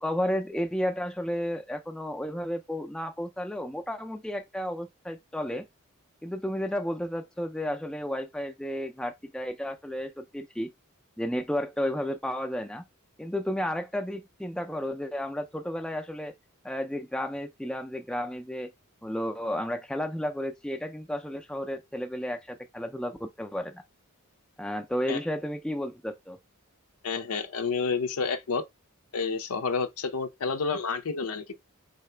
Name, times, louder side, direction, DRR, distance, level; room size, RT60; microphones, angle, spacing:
voice 1, 0.0-5.6 6.2-10.7 11.2-12.8 13.2-16.3 16.6-18.7 19.0-23.8 24.6-26.4, equal, 5° left, 0.4 m, -32 dB
voice 2, 27.0-28.6 29.1-31.6, left 5 dB, 85° left, 0.6 m, -30 dB
4.1 x 2.8 x 3.2 m
head